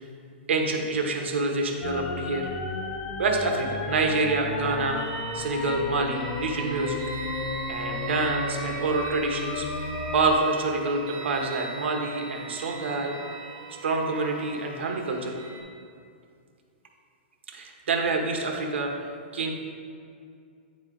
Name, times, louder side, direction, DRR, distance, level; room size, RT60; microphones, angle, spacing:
voice 1, 0.5-2.5 3.2-5.0 5.3-7.0 7.7-9.7 10.1-13.1 13.8-15.4 17.5-18.9 19.3-19.5, right 3 dB, 85° right, 2 dB, 1.0 m, -27 dB
sound 1, 1.8-10.4, left 3 dB, 25° left, 0.4 m, -33 dB
sound 2, 4.9-15.6, right 5 dB, 30° right, 1.0 m, -41 dB
9.2 x 3.2 x 3.8 m, 2.3 s
hypercardioid pair, 175°, 6 cm